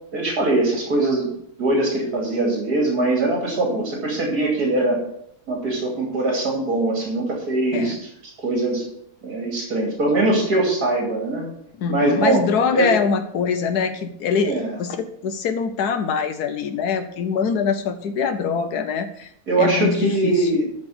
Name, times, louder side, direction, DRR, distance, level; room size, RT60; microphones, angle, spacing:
voice 1, 0.1-1.3 1.6-5.0 5.5-8.0 8.4-8.9 9.2-11.4 11.9-12.4 12.7-12.9 14.4-14.8 19.5-20.7, right 2 dB, 75° right, -1 dB, 3.1 m, -22 dB
voice 2, 11.8-19.3 19.6-20.5, left 6 dB, 80° left, 8 dB, 1.3 m, -23 dB
13.0 x 4.4 x 7.8 m, 0.70 s
omnidirectional pair, 1.7 m